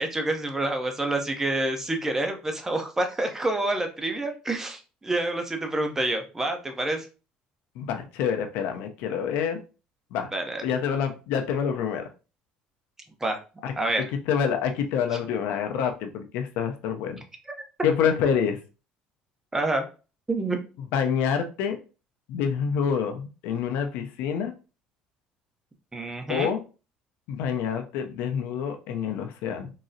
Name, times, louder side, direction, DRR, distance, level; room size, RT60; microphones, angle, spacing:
voice 1, 0.0-7.1 10.3-10.6 13.2-13.4 13.8-14.1 15.1-15.2 19.5-19.8 20.3-20.6 25.9-26.5, right 2 dB, 15° right, 4 dB, 0.7 m, -27 dB
voice 2, 7.8-9.6 10.1-10.3 10.6-12.1 13.6-13.7 14.3-17.2 17.8-18.6 20.9-21.8 22.3-24.5 26.3-26.6 27.3-29.7, left 7 dB, 80° left, 5 dB, 0.5 m, -27 dB
3.7 x 2.0 x 2.6 m, 0.33 s
supercardioid pair, 90°, 3 cm